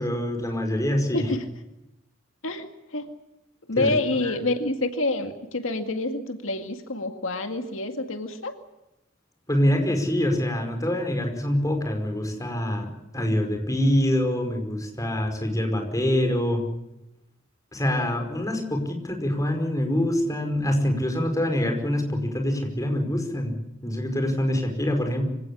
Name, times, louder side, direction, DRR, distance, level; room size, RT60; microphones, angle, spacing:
voice 1, 0.0-1.3 3.8-4.3 9.5-16.6 17.7-23.5 23.8-25.2, left 1 dB, 15° left, 4 dB, 5.1 m, -25 dB
voice 2, 1.1-1.4 2.4-3.1 3.7-8.5, left 2 dB, 85° left, 6 dB, 2.1 m, -27 dB
25.5 x 17.5 x 9.9 m, 0.91 s
head